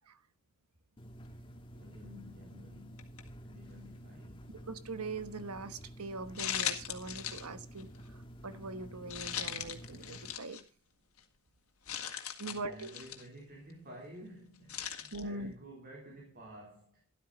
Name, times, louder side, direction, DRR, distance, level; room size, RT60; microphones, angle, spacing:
sound 1, 1.0-10.3, equal, 25° left, 1.6 m, -51 dB
voice 1, 1.8-3.2 3.4-4.6 12.4-17.0, equal, 40° right, 3.7 m, -52 dB
sound 2, 3.0-3.3 3.8-3.9 6.3-7.5 7.8-8.0 9.1-10.6 11.2-11.3 11.9-13.3 14.7-15.2, left 10 dB, 75° left, 2.0 m, -38 dB
voice 2, 4.7-10.6 12.4-12.9 15.1-15.5, right 3 dB, 85° right, 1.2 m, -42 dB
12.5 x 12.0 x 4.0 m
head